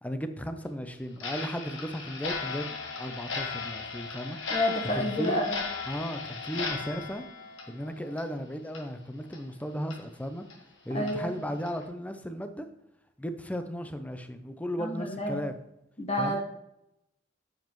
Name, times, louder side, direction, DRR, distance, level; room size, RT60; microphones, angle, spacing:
voice 1, 0.0-4.4 4.9-5.4 5.9-7.2 7.7-10.5 10.8-12.7 13.2-15.6 16.2-16.4, equal, 10° left, 8 dB, 0.6 m, -35 dB
Clock, 1.2-8.4 8.7-8.8 9.3-9.4 9.9-10.0 10.5-10.6 11.1-11.2 11.7-11.8, left 4 dB, 85° left, 1.6 m, -37 dB
voice 2, 4.5-5.6 10.9-11.3 14.8-15.4 16.0-16.4, left 1 dB, 35° left, 0 dB, 1.3 m, -29 dB
9.4 x 7.5 x 3.1 m, 0.83 s
head